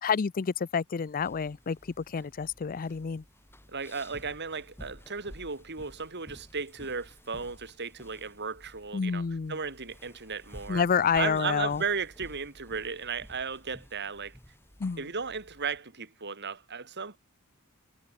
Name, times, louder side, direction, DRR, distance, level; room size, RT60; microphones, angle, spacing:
voice 1, 0.0-1.8 2.1-3.2 8.9-9.5 10.7-11.8 14.8-15.0, left 6 dB, 40° left, 0.4 m, -28 dB
sound 1, 1.1-15.8, equal, 10° left, 4.8 m, -53 dB
voice 2, 3.7-10.9 11.1-14.4 15.0-17.2, right 5 dB, 50° right, 3.8 m, -35 dB
head